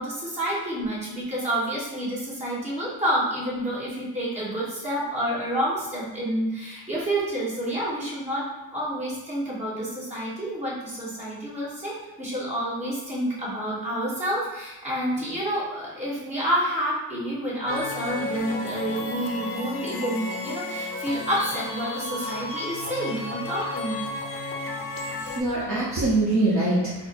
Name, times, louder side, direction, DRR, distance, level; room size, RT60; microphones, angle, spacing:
voice 1, 0.0-8.4 8.7-24.0, right 1 dB, 15° right, -8 dB, 1.3 m, -29 dB
sound 1, 17.7-25.4, left 2 dB, 35° left, 0.5 m, -33 dB
voice 2, 25.1-27.1, right 2 dB, 40° right, -8 dB, 0.8 m, -24 dB
3.9 x 2.1 x 4.1 m, 1.1 s
cardioid pair, 170°, 42 cm